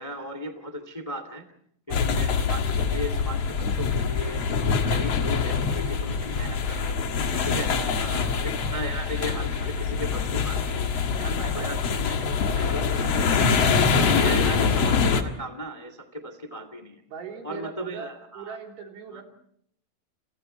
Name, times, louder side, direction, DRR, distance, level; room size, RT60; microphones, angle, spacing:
voice 1, 0.0-1.4 2.0-7.0 7.4-7.7 8.0-17.0 17.4-18.6 19.1-19.2, equal, 50° left, 10 dB, 0.4 m, -36 dB
sound 1, 1.9-15.2, left 5 dB, 70° left, 1.5 m, -24 dB
voice 2, 7.7-8.4 11.4-11.7 14.4-14.6 17.1-19.2, right 6 dB, 75° right, 2 dB, 6.0 m, -40 dB
30.0 x 29.0 x 4.5 m, 0.68 s
omnidirectional pair, 5.6 m